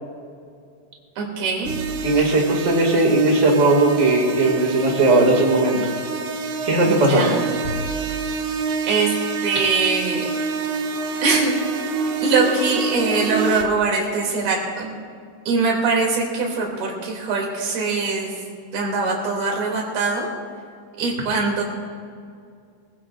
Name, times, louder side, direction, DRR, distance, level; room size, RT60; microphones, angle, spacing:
voice 1, 1.2-1.7 6.9-7.5 8.8-9.1 9.4-10.2 11.2-11.5 12.2-15.0 15.5-18.3 18.7-20.3 21.0-21.6, right 4 dB, 65° right, -1 dB, 4.6 m, -22 dB
sound 1, 1.6-13.6, right 4 dB, 80° right, 1.6 m, -27 dB
voice 2, 2.0-5.8 6.6-7.3, right 2 dB, 30° right, -1 dB, 1.5 m, -17 dB
25.0 x 16.0 x 2.5 m, 2.3 s
omnidirectional pair, 4.9 m